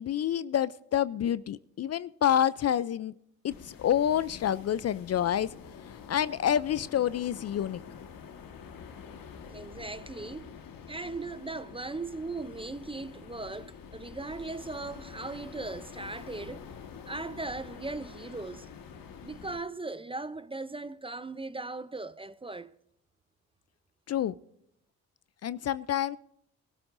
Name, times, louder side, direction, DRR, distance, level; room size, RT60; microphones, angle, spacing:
voice 1, 0.0-3.1 3.4-5.5 6.1-7.8 24.1-24.3 25.4-26.2, left 10 dB, 45° left, 0.4 m, -28 dB
sound 1, 3.5-19.6, left 6 dB, 65° left, 1.6 m, -47 dB
voice 2, 9.5-10.5 10.9-16.7 17.1-18.7 19.2-22.7, right 3 dB, 15° right, 0.5 m, -38 dB
23.0 x 13.0 x 2.6 m
supercardioid pair, 65°, 37 cm